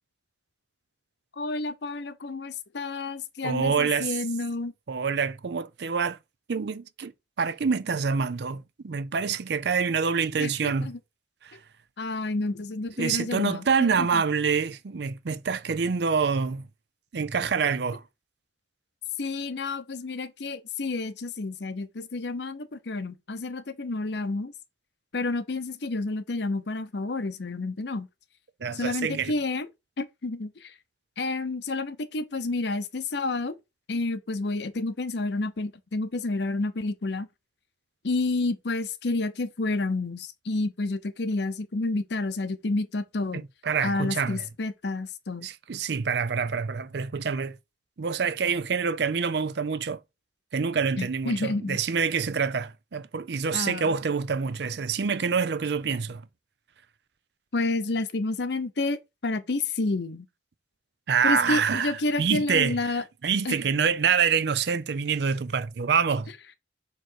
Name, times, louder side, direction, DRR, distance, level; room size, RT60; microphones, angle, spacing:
voice 1, 1.4-4.7 10.4-11.0 12.0-13.6 14.0-14.2 19.2-24.5 25.1-28.1 28.7-29.7 30.0-30.7 31.2-33.6 33.9-37.3 38.0-43.4 43.8-45.5 51.0-51.8 53.5-53.9 57.5-60.3 61.2-63.0 63.4-63.6, left 3 dB, 65° left, 0.7 m, -30 dB
voice 2, 3.4-4.2 4.9-6.2 6.5-7.1 7.4-10.9 11.4-11.6 13.0-16.6 17.1-18.0 28.6-29.3 43.3-44.5 45.4-47.6 48.0-50.0 50.5-56.2 61.1-62.9 63.2-66.3, right 6 dB, 60° right, 0.5 m, -26 dB
6.7 x 3.1 x 4.4 m
head